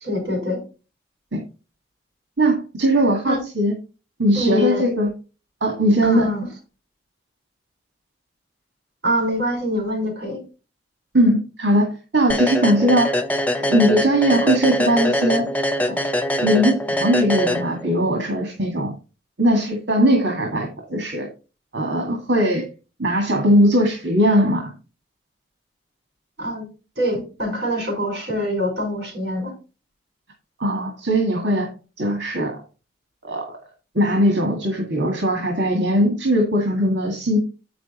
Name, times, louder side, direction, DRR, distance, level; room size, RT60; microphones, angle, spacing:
voice 1, 0.0-0.6 3.2-3.4 4.3-4.8 6.0-6.5 9.0-10.4 26.4-26.7 27.0-29.5, equal, 65° right, 4 dB, 4.7 m, -24 dB
voice 2, 2.4-3.7 4.2-5.1 5.6-6.3 11.1-13.1 13.6-15.4 15.9-16.0 16.4-18.9 19.4-21.3 21.7-22.7 23.0-24.7 30.6-31.7 32.0-32.6 33.2-33.6 33.9-37.4, equal, 80° right, 3 dB, 1.8 m, -19 dB
sound 1, 12.3-18.1, equal, 10° left, 0.7 m, -23 dB
7.8 x 6.1 x 4.2 m, 0.32 s
head